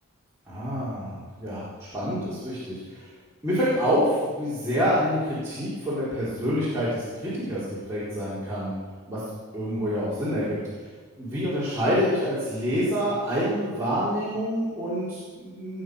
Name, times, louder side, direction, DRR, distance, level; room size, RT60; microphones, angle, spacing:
voice 1, 0.5-1.7 1.9-3.0 3.4-8.7 9.1-9.2 9.5-10.6 11.2-15.8, equal, 15° right, -11 dB, 4.3 m, -27 dB
19.5 x 9.5 x 6.5 m, 1.5 s
head